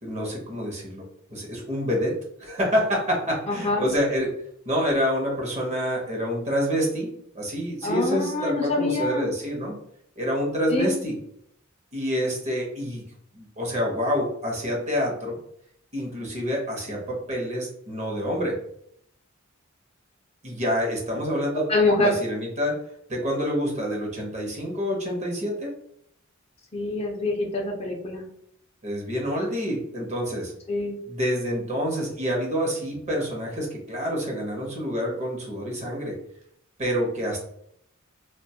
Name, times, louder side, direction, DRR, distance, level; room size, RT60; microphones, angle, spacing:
voice 1, 0.0-1.0 1.3-4.3 4.7-7.1 7.3-9.8 10.2-11.2 11.9-13.0 13.3-15.4 15.9-18.6 20.4-21.6 22.0-22.8 23.1-25.7 28.8-30.5 31.1-36.2 36.8-37.5, equal, 35° right, -1 dB, 0.8 m, -27 dB
voice 2, 3.5-3.9 7.8-9.3 10.7-10.9 21.7-22.2 26.7-28.2 30.7-31.0, left 2 dB, 30° left, 1 dB, 0.5 m, -25 dB
2.5 x 2.2 x 2.8 m, 0.70 s
head